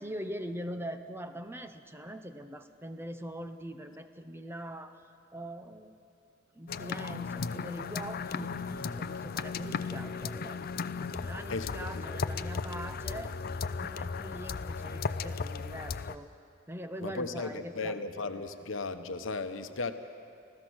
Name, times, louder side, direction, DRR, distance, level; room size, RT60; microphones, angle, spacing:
voice 1, 0.0-5.0 5.3-5.9 6.5-10.6 11.1-13.3 13.8-16.3 16.7-18.0, equal, 10° right, 8 dB, 0.7 m, -42 dB
sound 1, 6.7-16.2, left 5 dB, 45° left, 0.5 m, -36 dB
voice 2, 11.5-12.0 17.0-19.9, left 3 dB, 65° left, 8 dB, 1.0 m, -36 dB
26.5 x 16.0 x 6.3 m, 2.5 s
head